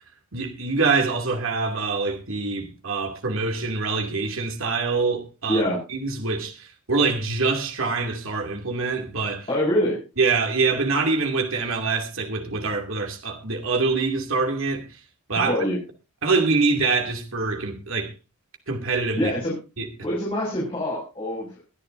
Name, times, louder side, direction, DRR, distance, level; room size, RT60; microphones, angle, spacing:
voice 1, 0.3-5.6 5.9-9.5 10.2-14.9 15.3-15.6 16.2-18.1 18.7-19.3 19.8-19.9, right 4 dB, 65° right, 2.6 m, -25 dB
voice 2, 5.5-5.8 9.5-10.0 15.4-15.8 19.2-19.5 20.0-21.6, equal, 25° left, 6.2 m, -24 dB
22.5 x 11.0 x 2.7 m
head